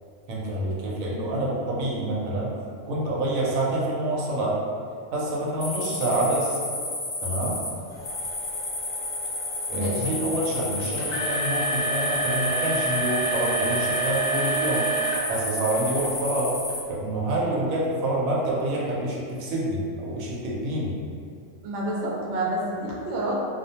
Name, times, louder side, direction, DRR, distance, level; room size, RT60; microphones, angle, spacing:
voice 1, 0.3-2.5 2.9-4.6 5.1-6.6 7.2-7.6 9.7-14.9 15.3-16.5 16.9-20.9, right 1 dB, 90° right, -5 dB, 1.0 m, -27 dB
sound 1, 5.6-16.8, left 2 dB, 55° left, 0.5 m, -32 dB
sound 2, 7.9-15.3 15.7-16.1 16.7-16.8 17.5-17.6, right 2 dB, 80° left, 1.0 m, -29 dB
voice 2, 9.7-10.2 21.6-23.4, right 1 dB, 65° right, -4 dB, 0.8 m, -29 dB
2.3 x 2.1 x 2.7 m, 2.3 s
omnidirectional pair, 1.4 m